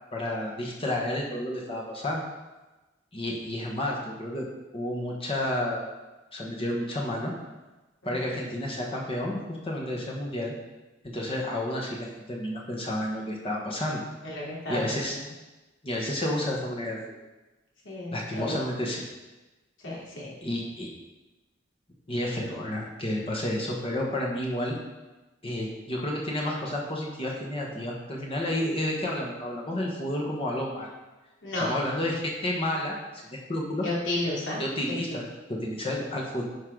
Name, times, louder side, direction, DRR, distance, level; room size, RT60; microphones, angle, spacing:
voice 1, 0.1-2.2 3.1-4.4 4.7-5.9 6.3-7.3 8.0-10.5 11.0-14.0 14.7-15.2 15.8-17.0 18.1-19.0 20.4-20.9 22.1-24.7 25.4-30.9 31.6-32.9 33.2-33.9 34.6-36.4, left 1 dB, 30° left, -2 dB, 1.3 m, -31 dB
voice 2, 14.2-14.9 17.8-18.6 19.8-20.3 31.4-31.7 33.8-34.6 34.9-35.2, left 1 dB, 85° left, -5 dB, 2.8 m, -32 dB
11.0 x 4.8 x 3.9 m, 1.1 s
head